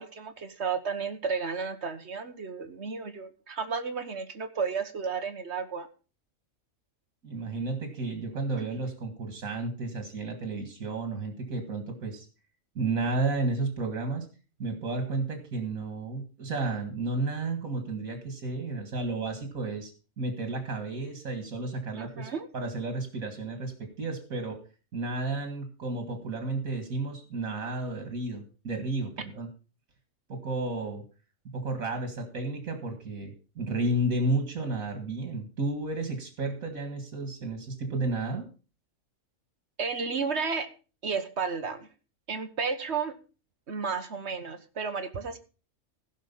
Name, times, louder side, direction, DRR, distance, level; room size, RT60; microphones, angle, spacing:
voice 1, 0.0-5.9 22.0-22.5 39.8-40.7 41.0-41.9 42.3-43.1 43.7-45.4, right 5 dB, 55° right, 9 dB, 1.4 m, -32 dB
voice 2, 7.2-12.3 12.8-14.3 14.6-19.9 20.2-24.6 24.9-29.5 30.3-31.0 31.5-38.5, right 2 dB, 90° right, 5 dB, 2.3 m, -32 dB
15.5 x 6.4 x 5.4 m, 0.35 s
omnidirectional pair, 1.4 m